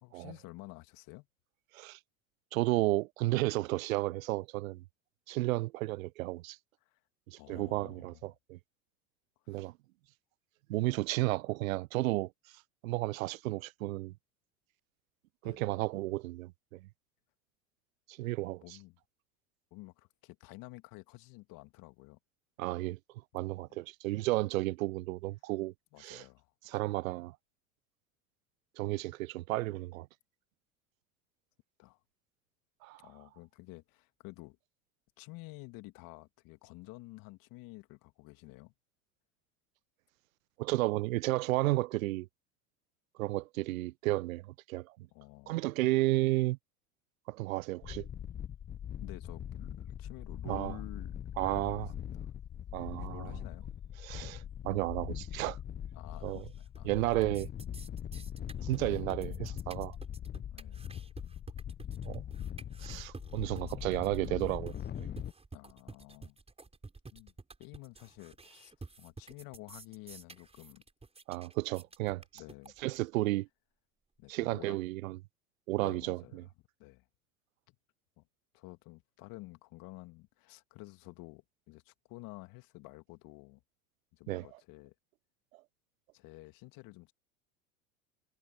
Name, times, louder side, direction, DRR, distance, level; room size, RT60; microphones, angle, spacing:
voice 1, 0.0-1.3 6.8-7.0 7.4-8.2 9.4-9.7 15.4-15.7 18.6-19.0 19.7-22.2 23.7-23.8 25.9-26.5 26.8-26.9 31.8-32.0 33.0-34.6 35.2-38.7 45.1-45.6 49.0-51.2 51.5-52.3 53.0-53.7 55.9-56.9 60.5-60.9 65.5-66.4 67.1-67.3 67.6-70.8 72.3-72.7 74.2-74.8 75.8-76.5 76.8-77.0 77.7-77.8 78.2-78.3 78.5-83.6 84.1-84.9 86.1-87.1, left 22 dB, 55° left, 2.3 m, -51 dB
voice 2, 2.5-4.8 5.3-6.6 7.3-8.6 9.5-9.7 10.7-12.3 12.8-14.1 15.4-16.9 18.1-18.6 22.6-23.0 23.3-25.7 26.0-26.2 26.7-27.4 28.8-30.1 32.8-33.0 40.6-42.3 43.2-45.1 45.5-46.6 47.3-48.1 50.5-50.7 51.4-51.9 52.7-53.3 54.0-55.6 56.2-56.4 56.9-57.5 58.6-60.0 62.0-62.2 62.8-65.1 71.3-72.2 72.8-73.5 74.3-75.2 75.7-76.4 84.3-84.5, right 19 dB, 70° right, 0.6 m, -33 dB
sound 1, 47.8-65.3, left 9 dB, 25° left, 0.9 m, -41 dB
sound 2, 56.3-56.8 57.0-73.0, right 3 dB, 15° right, 5.3 m, -50 dB
hypercardioid pair, 80°, 42 cm